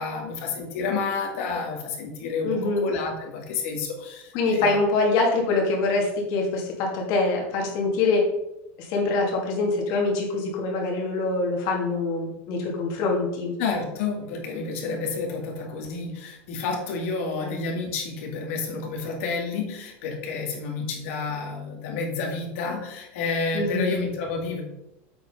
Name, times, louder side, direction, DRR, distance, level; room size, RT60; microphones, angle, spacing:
voice 1, 0.0-4.7 13.6-24.6, left 4 dB, 70° left, 1 dB, 2.4 m, -30 dB
voice 2, 2.4-2.9 4.3-8.2 8.8-13.5 17.4-17.5 23.5-24.0, left 3 dB, 55° left, 0 dB, 2.9 m, -24 dB
7.8 x 5.1 x 5.4 m, 0.88 s
supercardioid pair, 145°, 7 cm